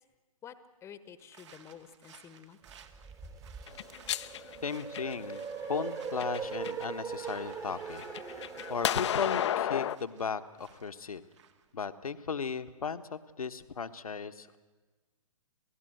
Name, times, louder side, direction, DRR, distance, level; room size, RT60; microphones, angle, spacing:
voice 1, 0.4-2.6, left 8 dB, 15° left, 13 dB, 1.2 m, -50 dB
Walking in Some Leaves, 1.2-11.8, right 8 dB, 55° right, 2.1 m, -60 dB
sound 1, 2.7-9.2, right 6 dB, 15° right, 1.6 m, -41 dB
sound 2, 3.7-5.4 6.0-6.9 7.3-10.0, left 10 dB, 50° left, 0.7 m, -33 dB
voice 2, 4.6-11.2 11.7-14.6, left 5 dB, 75° left, 11 dB, 1.3 m, -36 dB
28.5 x 17.0 x 7.9 m, 1.3 s
figure-of-eight pair, 125°, 18 cm